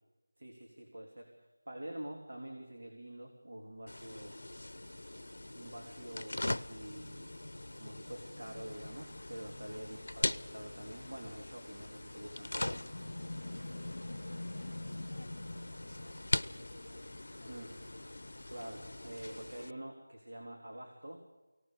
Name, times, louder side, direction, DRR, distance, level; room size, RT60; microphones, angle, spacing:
voice 1, 0.4-4.5 5.5-7.4 7.8-12.9 17.5-17.8 18.5-21.3, right 1 dB, 55° right, 1 dB, 3.4 m, -47 dB
sound 1, 3.9-19.7, left 1 dB, 75° left, 0.7 m, -41 dB
sound 2, 8.7-19.3, left 2 dB, 30° left, 4.9 m, -56 dB
sound 3, 10.6-17.1, equal, 15° right, 2.4 m, -65 dB
voice 2, 13.7-17.1 17.4-18.0, left 1 dB, 15° left, -6 dB, 3.2 m, -62 dB
23.5 x 18.0 x 6.8 m, 1.1 s
figure-of-eight pair, 175°, 0 cm